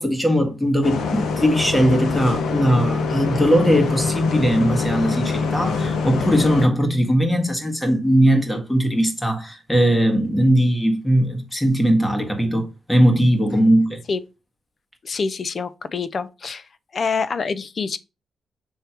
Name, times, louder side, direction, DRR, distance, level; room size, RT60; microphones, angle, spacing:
voice 1, 0.0-14.0, equal, 10° left, 1.7 m, -19 dB
Bus, 0.8-6.7, left 4 dB, 85° left, 0.9 m, -24 dB
voice 2, 15.0-16.6 16.9-18.0, left 5 dB, 45° left, 0.6 m, -26 dB
6.4 x 3.4 x 4.4 m
cardioid pair, 95°, 0 cm